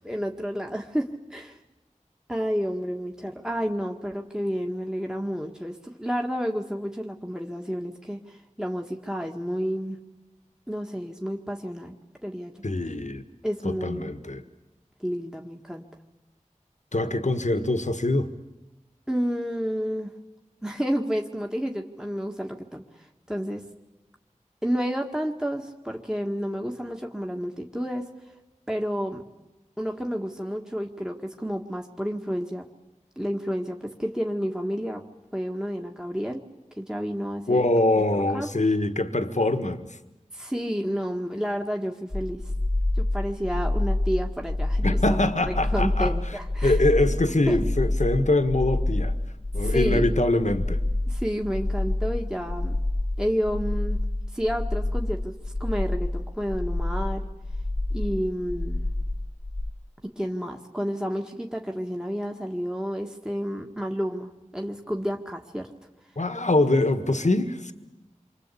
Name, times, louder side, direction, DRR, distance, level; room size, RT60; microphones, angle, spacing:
voice 1, 0.0-1.6 2.3-10.0 10.7-12.0 12.2-12.5 13.4-14.1 15.0-15.8 19.1-20.1 20.6-23.6 24.6-28.0 28.7-29.2 29.8-32.6 33.1-35.0 35.3-36.4 36.8-37.7 38.3-38.5 40.3-42.4 43.0-45.2 45.5-46.8 47.5-47.6 49.6-50.1 51.1-52.8 53.2-54.0 54.3-55.3 55.6-57.3 57.9-58.9 60.0-65.7, equal, 5° right, 1.7 m, -30 dB
voice 2, 12.6-13.2 13.6-14.4 16.9-18.3 37.5-40.0 44.8-46.1 46.6-49.2 49.5-50.8 66.2-67.7, left 2 dB, 65° left, 1.5 m, -23 dB
sound 1, 42.1-59.7, left 1 dB, 35° left, 1.5 m, -27 dB
27.5 x 24.5 x 8.5 m
wide cardioid pair, 40°, 13 cm